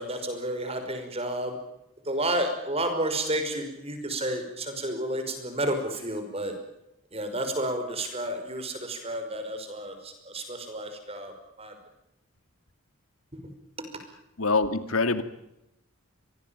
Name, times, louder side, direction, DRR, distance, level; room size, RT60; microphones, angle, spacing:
voice 1, 0.0-1.5 2.1-6.5 7.1-11.7, right 1 dB, 30° right, 6 dB, 5.5 m, -31 dB
voice 2, 14.4-15.2, left 3 dB, 75° left, 11 dB, 2.3 m, -24 dB
25.5 x 19.5 x 9.0 m, 0.85 s
head